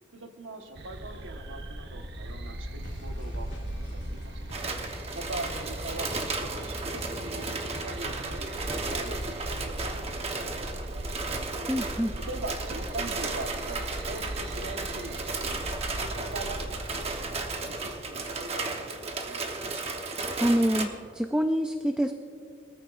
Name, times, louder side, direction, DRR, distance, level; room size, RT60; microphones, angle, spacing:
voice 1, 0.1-4.3 4.9-11.2 12.3-15.6 16.0-19.5, right 2 dB, 90° right, 4 dB, 1.3 m, -42 dB
sound 1, 0.7-18.7, right 1 dB, 60° right, 0.9 m, -39 dB
sound 2, 2.8-9.8, equal, 80° left, 2.3 m, -45 dB
sound 3, 4.5-20.8, right 3 dB, 30° right, 1.0 m, -34 dB
voice 2, 11.7-12.2 20.4-22.1, equal, 5° right, 6 dB, 0.3 m, -26 dB
23.0 x 14.0 x 2.5 m, 2.4 s
head